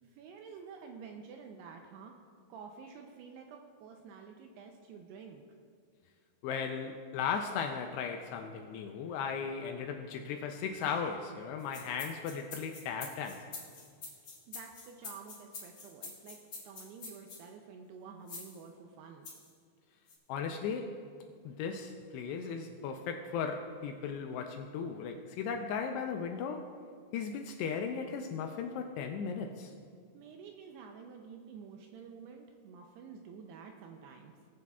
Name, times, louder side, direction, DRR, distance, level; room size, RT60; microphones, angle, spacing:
voice 1, 0.0-2.2 2.5-5.5 14.5-16.4 16.6-19.3 30.1-34.5, right 6 dB, 80° right, 3 dB, 2.4 m, -50 dB
voice 2, 6.4-13.5 20.3-21.0 21.5-26.7 27.1-29.7, left 6 dB, 80° left, 5 dB, 2.5 m, -36 dB
sound 1, 11.6-17.4 18.3-18.6 19.2-19.5 20.1-20.2, left 4 dB, 45° left, 2.5 m, -46 dB
19.5 x 9.1 x 2.4 m, 2.1 s
omnidirectional pair, 5.2 m